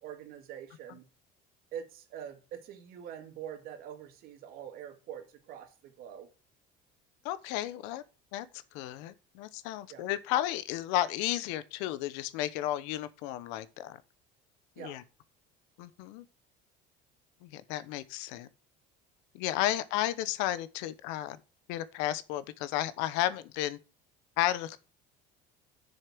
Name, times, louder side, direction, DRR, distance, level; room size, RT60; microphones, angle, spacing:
voice 1, 0.0-1.1 1.7-6.3 9.9-10.1 14.8-15.0, right 9 dB, 55° right, 2.2 m, -44 dB
voice 2, 7.2-8.0 8.3-8.5 8.7-14.0 14.8-15.0 15.8-16.2 17.4-18.5 19.3-21.4 21.7-23.8 24.4-24.8, left 14 dB, 90° left, 1.0 m, -33 dB
7.0 x 6.8 x 6.1 m
cardioid pair, 165°, 18 cm